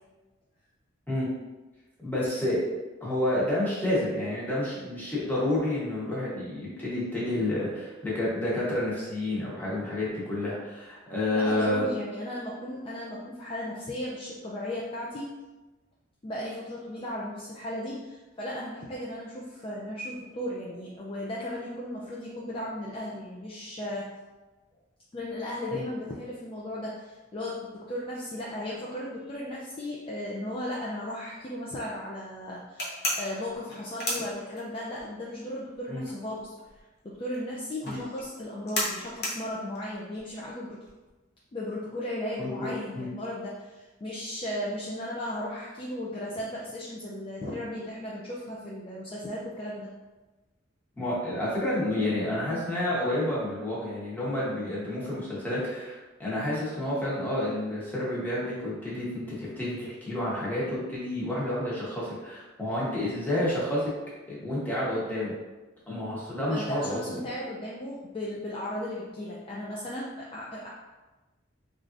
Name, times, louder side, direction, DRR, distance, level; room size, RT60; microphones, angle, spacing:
voice 1, 2.0-2.6 3.0-11.9 25.7-25.8 35.9-36.0 37.8-38.0 42.4-43.1 51.0-63.9 64.3-65.4 65.9-67.0, left 1 dB, 10° left, -8 dB, 0.9 m, -29 dB
voice 2, 11.3-15.3 16.2-24.1 25.1-36.5 37.0-40.8 41.5-49.9 66.5-70.7, left 1 dB, 25° left, -5 dB, 0.3 m, -36 dB
sound 1, 32.8-35.0 35.3-41.1, left 1 dB, 55° left, 0.8 m, -33 dB
3.2 x 2.4 x 2.5 m, 1.1 s
head